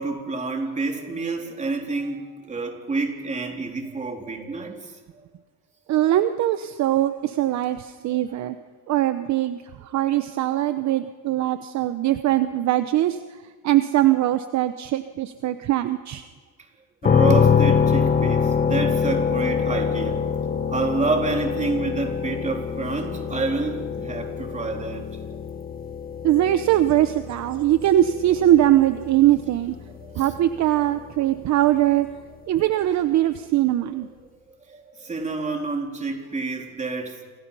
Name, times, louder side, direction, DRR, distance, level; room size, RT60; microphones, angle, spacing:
voice 1, 0.0-5.2 8.1-8.2 17.0-25.1 29.9-30.4 32.4-32.5 34.7-37.2, right 3 dB, 20° right, 2 dB, 3.7 m, -29 dB
voice 2, 5.9-8.6 8.9-13.2 13.6-16.2 26.2-29.8 30.2-32.1 32.5-34.1, right 13 dB, 45° right, 10 dB, 1.0 m, -21 dB
sound 1, 17.0-30.8, left 6 dB, 25° left, 1.5 m, -24 dB
28.0 x 27.5 x 5.6 m, 1.4 s
cardioid pair, 145°, 38 cm